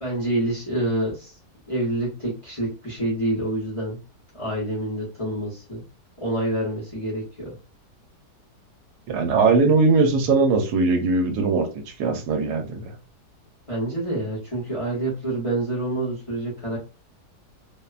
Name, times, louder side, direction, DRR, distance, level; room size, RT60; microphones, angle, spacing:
voice 1, 0.0-1.3 1.7-4.0 4.3-5.8 6.2-7.5 13.7-16.8, right 1 dB, 35° left, -5 dB, 0.5 m, -27 dB
voice 2, 9.1-11.7 12.0-12.9, right 4 dB, 75° right, 5 dB, 1.1 m, -20 dB
2.7 x 2.1 x 2.3 m, 0.32 s
omnidirectional pair, 1.7 m